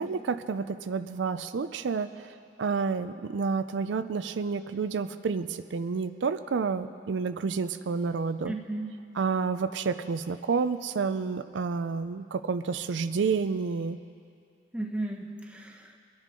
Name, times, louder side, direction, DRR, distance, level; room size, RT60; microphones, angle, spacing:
voice 1, 0.0-2.3 2.6-8.5 9.2-14.0, right 5 dB, 80° right, 11 dB, 0.4 m, -29 dB
voice 2, 8.5-8.9 14.7-16.0, right 2 dB, 5° right, 1 dB, 0.9 m, -35 dB
23.5 x 10.5 x 3.7 m, 2.4 s
head